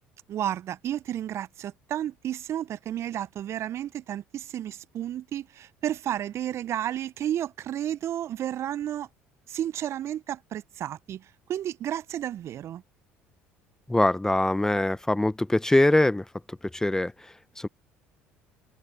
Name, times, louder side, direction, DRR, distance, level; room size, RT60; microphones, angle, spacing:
voice 1, 0.3-9.1 9.5-12.8, right 11 dB, 50° right, 1.1 m, -32 dB
voice 2, 13.9-17.7, left 1 dB, 10° left, 0.9 m, -24 dB
open air
figure-of-eight pair, 55°, 6 cm